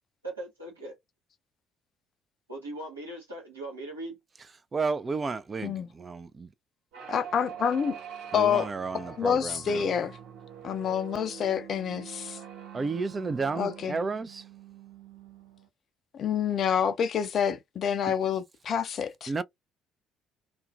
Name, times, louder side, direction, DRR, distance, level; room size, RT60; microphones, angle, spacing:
voice 1, 0.2-1.0 2.5-4.2, right 2 dB, 85° right, 1.0 m, -39 dB
voice 2, 4.7-6.5 8.3-9.8 12.7-14.5 19.3-19.4, right 4 dB, 30° right, 0.4 m, -32 dB
sound 1, 6.9-15.7, right 8 dB, 65° right, 0.7 m, -44 dB
voice 3, 7.1-8.0 8.3-8.7 8.9-10.2 10.6-12.4 13.6-14.0 16.1-19.3, left 8 dB, 45° left, 0.3 m, -28 dB
2.4 x 2.1 x 2.3 m
figure-of-eight pair, 50°, 0 cm